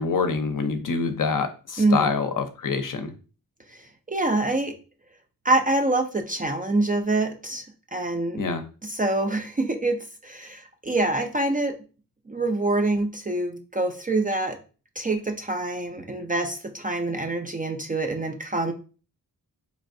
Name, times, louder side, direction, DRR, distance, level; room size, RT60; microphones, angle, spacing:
voice 1, 0.0-3.1 8.4-8.6, left 5 dB, 55° left, 7 dB, 0.6 m, -26 dB
voice 2, 1.8-2.1 3.7-4.7 5.4-8.4 8.8-11.7 12.3-14.6 15.0-18.7, right 2 dB, 25° right, 5 dB, 0.4 m, -25 dB
4.3 x 3.1 x 2.5 m, 0.36 s
wide cardioid pair, 135°, 38 cm